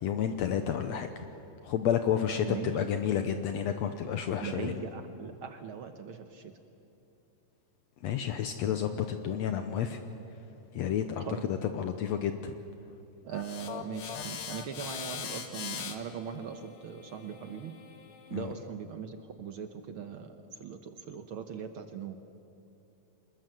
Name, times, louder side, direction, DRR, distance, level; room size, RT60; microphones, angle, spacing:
voice 1, 0.0-1.1 1.6-4.9 8.0-10.0 10.7-12.5 18.3-18.5, left 9 dB, 70° left, 8 dB, 1.9 m, -30 dB
voice 2, 4.4-6.4 11.2-11.4 13.2-17.7 18.3-20.3 20.6-22.2, right 7 dB, 65° right, 8 dB, 1.3 m, -40 dB
sound 1, 13.3-18.5, left 7 dB, 55° left, 2.1 m, -41 dB
26.0 x 20.5 x 7.8 m, 3.0 s
omnidirectional pair, 3.5 m